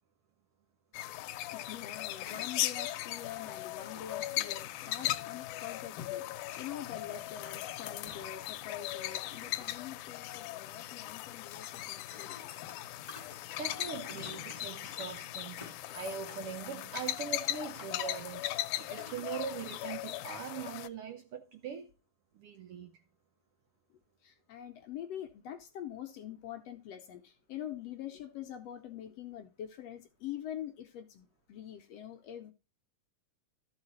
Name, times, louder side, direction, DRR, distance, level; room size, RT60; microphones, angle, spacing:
sound 1, 0.9-20.9, left 15 dB, 90° left, 2.1 m, -38 dB
voice 1, 1.1-12.5 24.2-32.5, left 10 dB, 70° left, 1.7 m, -45 dB
sound 2, 1.9-2.8 3.1-3.2 3.8-5.0 5.8-6.7 7.1-8.5 8.8-9.8 11.8-15.2 15.4-16.4 16.8-17.3 17.7-18.2 19.0-19.7 20.3-20.4, left 3 dB, 20° left, 0.9 m, -54 dB
voice 2, 13.6-21.9 22.3-22.9, right 7 dB, 70° right, 1.4 m, -42 dB
13.0 x 4.8 x 4.0 m
omnidirectional pair, 3.4 m